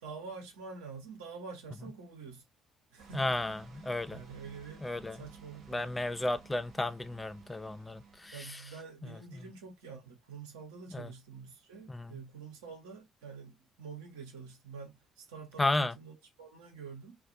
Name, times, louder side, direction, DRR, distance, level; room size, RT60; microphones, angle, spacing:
voice 1, 0.0-2.4 2.9-3.4 4.1-5.9 8.3-17.2, right 5 dB, 70° right, 0.8 m, -47 dB
sound 1, 3.0-8.3, right 5 dB, 55° right, 1.1 m, -55 dB
voice 2, 3.1-4.2 4.8-5.2 5.7-8.6 10.9-11.1 11.9-12.1 15.6-15.9, left 2 dB, 15° left, 0.4 m, -33 dB
2.4 x 2.1 x 2.6 m
figure-of-eight pair, 50°, 0 cm